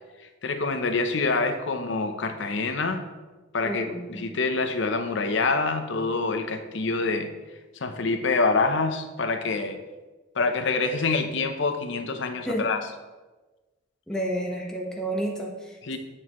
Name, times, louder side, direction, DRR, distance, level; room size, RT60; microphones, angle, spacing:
voice 1, 0.4-3.0 3.5-7.3 7.8-9.8 10.3-12.8 15.8-16.0, left 3 dB, 65° left, 7 dB, 0.7 m, -26 dB
voice 2, 3.6-4.2 12.4-12.7 14.1-16.0, right 1 dB, 5° left, -2 dB, 1.2 m, -31 dB
9.7 x 6.2 x 3.1 m, 1.2 s
head